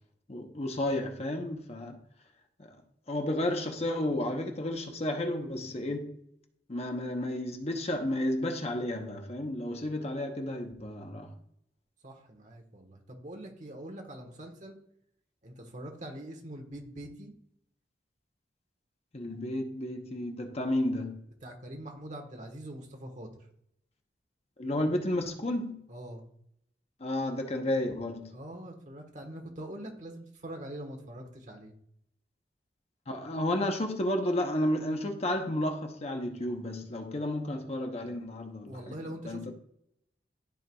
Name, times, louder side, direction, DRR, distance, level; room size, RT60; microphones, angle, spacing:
voice 1, 0.3-2.0 3.1-6.1 6.7-11.3 19.1-21.2 24.6-25.8 27.0-28.3 33.1-38.8 39.3-39.5, left 1 dB, 35° left, 0.9 m, -32 dB
voice 2, 12.0-14.8 15.4-17.3 21.4-23.5 25.9-26.2 28.3-31.7 38.7-39.5, right 1 dB, 45° right, 1.3 m, -43 dB
13.0 x 4.6 x 2.3 m
head